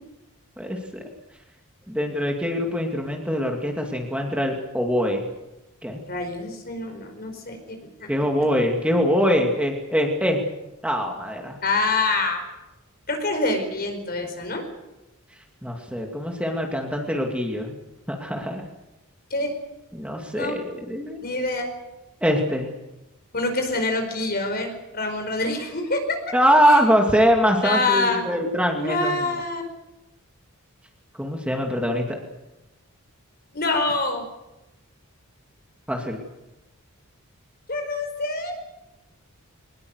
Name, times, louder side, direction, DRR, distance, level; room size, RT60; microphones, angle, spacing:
voice 1, 0.6-1.0 1.9-5.2 5.8-6.0 8.1-10.4 10.8-11.6 15.6-17.7 18.1-18.6 19.9-21.2 22.2-22.7 26.3-29.1 31.2-32.0 35.9-36.2, equal, 5° right, 1 dB, 2.4 m, -23 dB
voice 2, 6.1-8.1 11.6-12.4 13.1-14.6 19.3-19.5 20.3-20.6 21.2-21.7 23.3-26.3 26.7-26.8 27.6-28.3 28.7-29.6 33.5-34.2 37.7-38.5, left 2 dB, 45° left, 5 dB, 4.9 m, -26 dB
23.0 x 20.0 x 8.1 m, 0.97 s
head